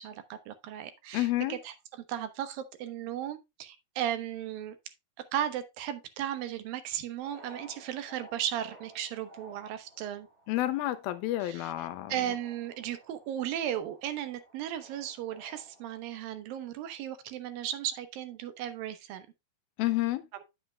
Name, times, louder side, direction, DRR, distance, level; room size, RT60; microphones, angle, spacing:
voice 1, 0.0-4.8 5.3-10.3 11.4-19.3, right 10 dB, 75° right, 2.8 m, -36 dB
voice 2, 1.1-1.6 10.5-12.1 19.8-20.2, left 16 dB, 85° left, 2.7 m, -29 dB
sound 1, 7.2-16.2, right 1 dB, 55° right, 6.8 m, -55 dB
9.6 x 8.8 x 2.3 m
omnidirectional pair, 4.2 m